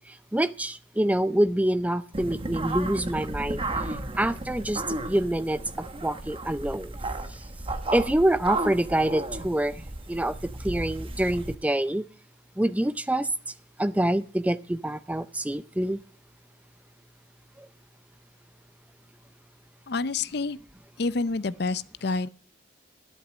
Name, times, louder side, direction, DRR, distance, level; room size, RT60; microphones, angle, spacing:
voice 1, 0.0-3.6 3.9-5.6 6.0-6.9 7.3-7.4 7.9-12.0 12.6-13.3 13.8-16.0 17.6-17.7, right 1 dB, 10° right, 0.5 m, -26 dB
sound 1, 2.1-11.6, right 2 dB, 30° right, 1.2 m, -34 dB
voice 2, 19.9-20.6 21.0-22.3, left 3 dB, 55° left, 0.6 m, -28 dB
11.5 x 11.0 x 6.2 m
head